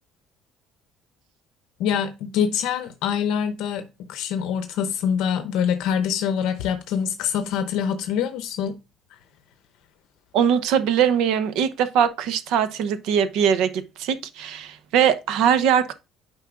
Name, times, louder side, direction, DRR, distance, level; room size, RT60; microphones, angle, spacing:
voice 1, 1.8-8.8 9.1-9.2, left 8 dB, 75° left, 0.7 m, -25 dB
voice 2, 10.3-15.9, right 8 dB, 75° right, 0.8 m, -21 dB
9.4 x 5.3 x 2.5 m
cardioid pair, 145°, 0 cm